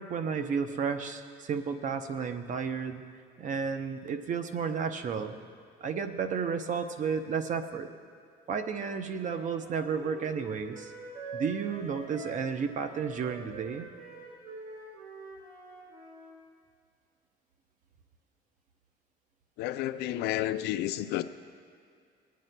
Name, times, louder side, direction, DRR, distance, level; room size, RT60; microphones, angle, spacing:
voice 1, 0.0-3.0 3.4-5.4 5.8-7.9 8.5-10.9 11.3-13.9, right 6 dB, 50° right, 8 dB, 0.7 m, -32 dB
Wind instrument woodwind instrument, 9.0-16.3, right 3 dB, 90° right, 3.1 m, -46 dB
voice 2, 19.6-21.2, left 13 dB, 90° left, 11 dB, 0.4 m, -31 dB
23.5 x 9.3 x 2.2 m, 2.2 s
cardioid pair, 110°, 17 cm